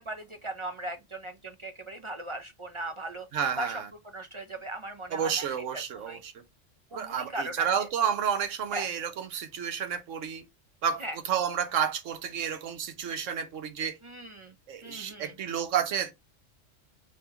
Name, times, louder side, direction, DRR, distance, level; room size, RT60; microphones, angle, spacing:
voice 1, 0.0-3.3 3.6-3.8 4.1-5.5 5.7-6.2 6.9-7.7 8.7-8.9 11.0-11.2 14.0-14.5 14.8-15.3, right 1 dB, 45° right, 0.4 m, -38 dB
voice 2, 3.3-3.9 5.1-6.3 6.9-10.5 10.8-14.0 14.7-16.1, right 8 dB, 85° right, 1.2 m, -30 dB
5.6 x 2.9 x 2.9 m
omnidirectional pair, 1.3 m